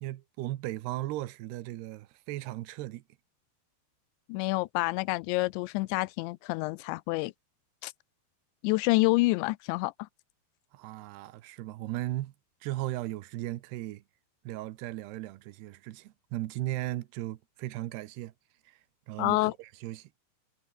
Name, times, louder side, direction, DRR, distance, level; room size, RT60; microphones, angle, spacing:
voice 1, 0.0-3.0 10.7-12.3 12.6-14.0 14.4-18.3 18.7-18.8 19.1-20.1, right 16 dB, 75° right, 2.9 m, -37 dB
voice 2, 4.3-7.3 7.8-7.9 8.6-9.9 19.2-19.5, left 22 dB, 85° left, 2.9 m, -27 dB
omnidirectional pair, 5.2 m